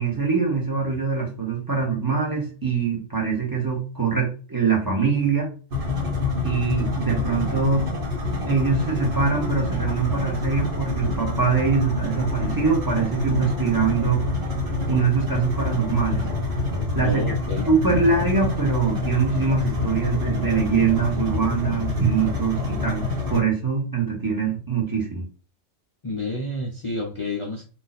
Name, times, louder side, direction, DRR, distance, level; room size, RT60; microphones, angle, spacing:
voice 1, 0.0-5.5 6.4-7.9 8.5-14.2 14.7-16.3 16.9-17.4 17.7-25.2, right 5 dB, 20° right, -3 dB, 0.8 m, -23 dB
sound 1, 5.7-23.4, left 3 dB, 50° right, 1.1 m, -27 dB
voice 2, 17.0-17.7 26.0-27.7, left 2 dB, 55° left, 0 dB, 0.3 m, -29 dB
2.6 x 2.3 x 4.0 m, 0.38 s
omnidirectional pair, 1.3 m